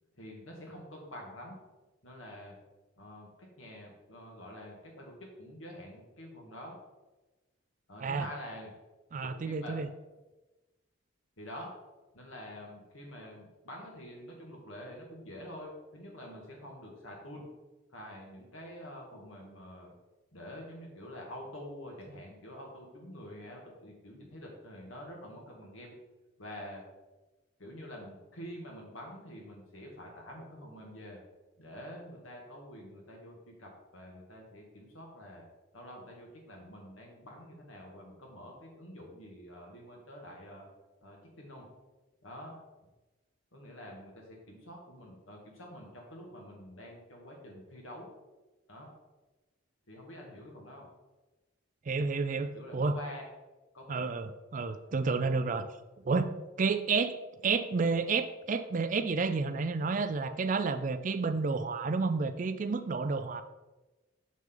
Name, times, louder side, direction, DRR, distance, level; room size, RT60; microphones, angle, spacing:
voice 1, 0.2-1.6 2.0-2.6 3.0-6.8 7.9-8.7 9.2-9.7 11.4-11.8 12.1-17.5 17.9-19.9 20.3-25.9 26.4-26.8 27.6-31.2 31.6-35.5 35.7-40.7 41.0-41.7 42.2-42.6 43.5-48.1 48.7-48.9 49.9-50.9 52.2-53.3 53.7-54.2 54.7-54.8, equal, 90° left, -1 dB, 2.1 m, -47 dB
voice 2, 9.1-9.9 51.9-53.0 53.9-55.7 56.0-63.4, right 4 dB, 40° right, 11 dB, 0.4 m, -30 dB
6.7 x 6.2 x 3.9 m, 1.1 s
head